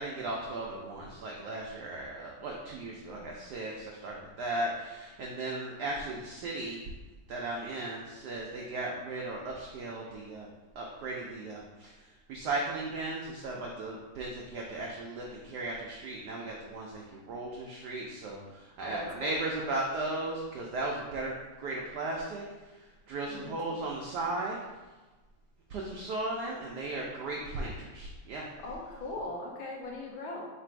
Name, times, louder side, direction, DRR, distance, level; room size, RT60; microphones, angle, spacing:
voice 1, 0.0-6.8 7.3-10.5 10.8-11.9 12.3-21.3 21.6-22.4 23.1-24.6 25.7-28.5, right 2 dB, 80° right, -2 dB, 0.9 m, -36 dB
voice 2, 18.8-19.4 23.3-23.7 28.6-30.5, left 2 dB, 75° left, -1 dB, 1.5 m, -40 dB
3.9 x 2.5 x 4.4 m, 1.2 s
omnidirectional pair, 2.3 m